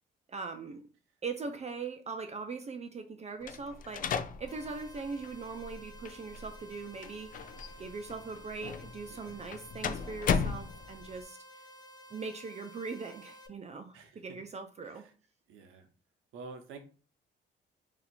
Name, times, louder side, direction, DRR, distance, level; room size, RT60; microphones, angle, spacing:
voice 1, 0.3-0.9 1.2-7.4 7.8-11.6 12.1-15.0, right 4 dB, 35° right, 0.5 m, -41 dB
sound 1, 3.4-11.2, left 6 dB, 45° left, 0.4 m, -37 dB
sound 2, 4.5-13.5, equal, 20° left, 0.8 m, -53 dB
voice 2, 13.9-14.4 14.8-15.1 15.5-15.9 16.3-16.8, right 4 dB, 90° right, 0.8 m, -49 dB
2.8 x 2.4 x 4.1 m
cardioid pair, 90°, 20 cm